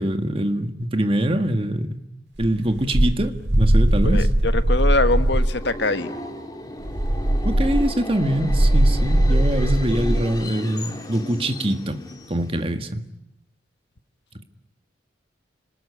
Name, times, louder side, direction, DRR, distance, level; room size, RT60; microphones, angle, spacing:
voice 1, 0.0-2.0 2.4-4.3 7.4-12.0 12.3-13.1, right 1 dB, 30° right, 7 dB, 1.7 m, -24 dB
sound 1, 2.4-5.6 6.8-10.3, right 1 dB, 65° right, 1.9 m, -20 dB
voice 2, 4.0-6.1, left 2 dB, 65° left, 10 dB, 1.4 m, -23 dB
Subway metro underground, 5.0-12.8, left 1 dB, 20° left, 3.0 m, -36 dB
30.0 x 20.5 x 9.8 m, 0.84 s
head